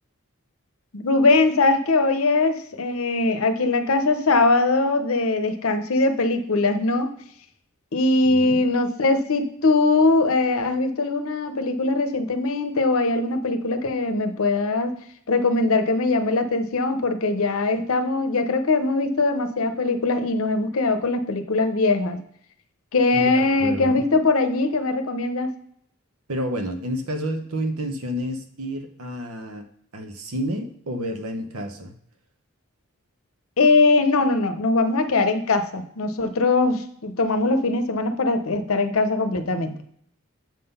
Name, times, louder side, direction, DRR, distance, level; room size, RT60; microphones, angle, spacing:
voice 1, 0.9-7.2 7.9-14.9 15.3-22.2 22.9-25.5 33.6-39.8, left 3 dB, 75° left, 8 dB, 0.8 m, -21 dB
voice 2, 8.2-8.6 23.1-24.0 26.3-29.7 29.9-31.9, equal, 85° right, 7 dB, 1.0 m, -30 dB
7.4 x 3.8 x 5.5 m, 0.66 s
head